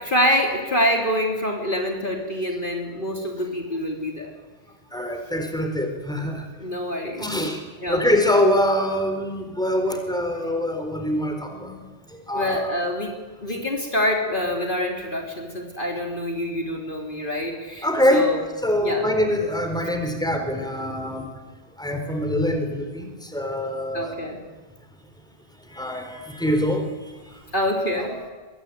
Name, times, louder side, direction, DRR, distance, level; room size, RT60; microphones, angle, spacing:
voice 1, 0.0-4.3 6.6-7.3 7.8-8.0 12.3-18.4 18.8-19.1 23.9-24.4 27.5-28.2, equal, 45° left, 1 dB, 3.6 m, -26 dB
voice 2, 4.9-6.4 7.2-7.6 7.9-11.8 12.1-12.8 17.8-18.3 18.6-21.3 21.8-24.2 25.7-27.1 28.0-28.3, left 1 dB, 5° left, 5 dB, 4.2 m, -24 dB
24.0 x 23.0 x 9.5 m, 1.3 s
omnidirectional pair, 1.2 m